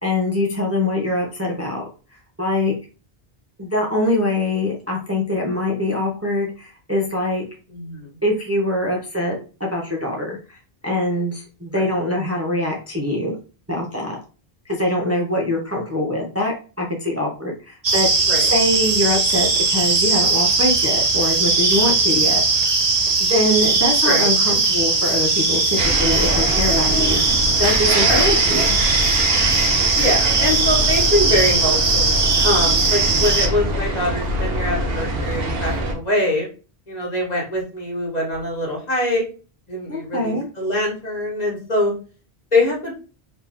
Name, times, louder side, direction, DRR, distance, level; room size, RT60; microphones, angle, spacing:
voice 1, 0.0-1.8 2.4-2.7 3.6-7.4 8.2-10.6 10.8-13.3 13.7-14.2 14.6-18.1 18.5-22.7 23.2-28.7 39.9-40.5, left 1 dB, 15° right, -1 dB, 0.7 m, -23 dB
voice 2, 7.7-8.2 11.7-11.9 18.3-18.5 24.0-24.3 28.1-28.3 29.9-32.1 32.4-36.5 36.9-39.2 39.7-41.9 42.5-42.9, left 1 dB, 40° left, -2 dB, 1.4 m, -23 dB
sound 1, 17.8-33.5, right 3 dB, 40° right, 0.9 m, -19 dB
sound 2, 25.8-35.9, equal, 65° right, 1.1 m, -24 dB
4.2 x 2.9 x 3.4 m, 0.36 s
omnidirectional pair, 1.1 m